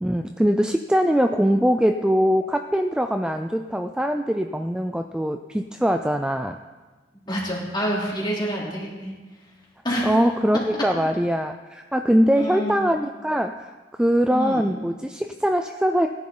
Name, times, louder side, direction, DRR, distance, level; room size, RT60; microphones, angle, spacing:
voice 1, 0.0-6.6 10.0-13.7 14.0-16.1, equal, 5° right, 6 dB, 0.3 m, -22 dB
voice 2, 7.3-9.1 9.8-10.1 10.5-10.6 12.3-12.8 14.3-14.7, equal, 25° left, -4 dB, 3.3 m, -27 dB
18.0 x 11.0 x 3.9 m, 1.3 s
head